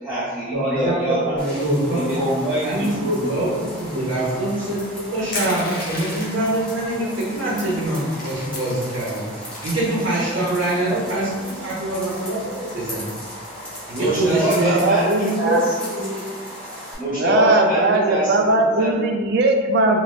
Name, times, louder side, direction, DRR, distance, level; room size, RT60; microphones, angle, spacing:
voice 1, 0.0-1.4 1.9-3.3 13.9-16.2 17.0-19.1, right 1 dB, 10° right, -14 dB, 0.8 m, -24 dB
voice 2, 0.5-4.8 5.1-9.2 9.6-13.1 13.9-14.9, right 1 dB, 80° right, -8 dB, 0.9 m, -24 dB
sound 1, 1.4-17.0, equal, 5° left, 1.1 m, -36 dB
Crushing, 5.3-6.5 7.3-7.4 7.7-8.9 9.4-10.5, left 2 dB, 50° left, 0.7 m, -33 dB
voice 3, 14.6-15.6 17.0-20.0, right 2 dB, 60° right, 4 dB, 0.4 m, -19 dB
3.9 x 2.2 x 2.4 m, 1.6 s
head